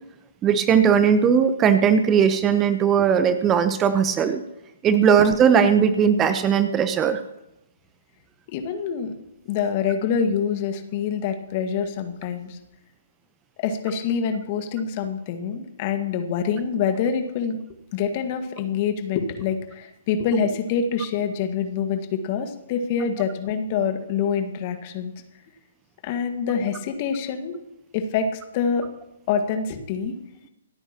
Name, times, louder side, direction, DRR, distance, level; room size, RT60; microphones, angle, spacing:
voice 1, 0.4-4.4 4.8-7.2, right 7 dB, 20° right, 10 dB, 0.9 m, -18 dB
voice 2, 8.5-9.1 9.5-12.6 13.6-17.6 17.9-25.1 26.0-27.6 27.9-28.9 29.3-30.1, left 6 dB, 40° left, 7 dB, 1.7 m, -26 dB
27.0 x 9.0 x 3.0 m, 0.85 s
figure-of-eight pair, 130°, 0 cm